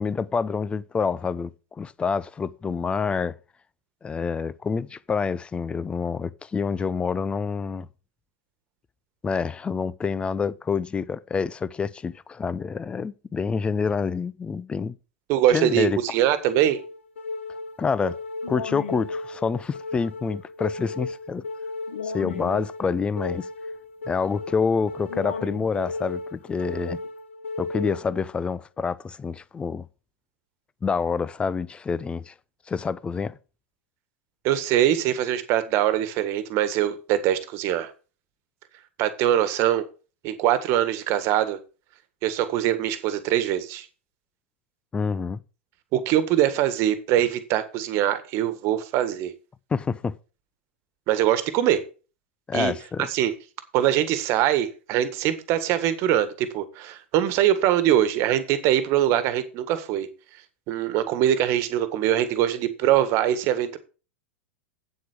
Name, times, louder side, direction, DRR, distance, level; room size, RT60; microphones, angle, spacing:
voice 1, 0.0-3.4 4.0-7.9 9.2-14.9 15.5-16.0 17.8-18.2 18.5-21.4 22.0-23.5 24.1-27.0 27.6-29.9 30.8-32.3 32.7-33.4 44.9-45.4 49.7-50.2 52.5-53.1, left 5 dB, 15° left, 0.6 m, -27 dB
voice 2, 15.3-16.8 34.4-37.9 39.0-39.8 40.2-41.6 42.2-43.9 45.9-49.3 51.1-51.8 52.5-52.7 53.1-53.3 53.7-60.1 60.7-63.8, right 11 dB, 45° right, 1.6 m, -23 dB
sound 1, 15.4-28.4, left 3 dB, 80° left, 1.1 m, -35 dB
8.6 x 7.8 x 5.0 m
hypercardioid pair, 100°, 7 cm